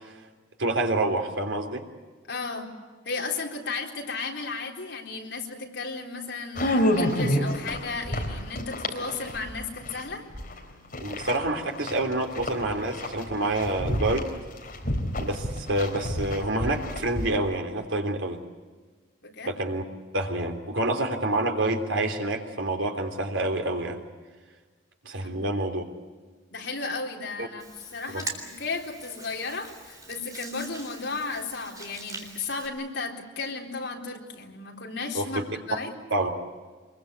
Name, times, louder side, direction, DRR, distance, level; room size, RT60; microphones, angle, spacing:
voice 1, 0.6-1.8 11.0-14.3 15.2-18.4 19.5-19.8 20.1-24.0 25.0-25.8 27.4-27.5 35.1-35.3 36.1-36.3, right 2 dB, 85° right, 4 dB, 3.4 m, -27 dB
voice 2, 2.3-2.7 3.0-10.3 19.2-19.5 25.2-25.4 26.5-35.9, left 4 dB, 65° left, 0 dB, 3.9 m, -34 dB
sound 1, 6.5-10.6 10.9-17.2, left 1 dB, 45° left, 3.9 m, -29 dB
Hands, 27.6-32.7, right 3 dB, 20° right, 3.8 m, -42 dB
25.0 x 22.5 x 8.3 m, 1.4 s
head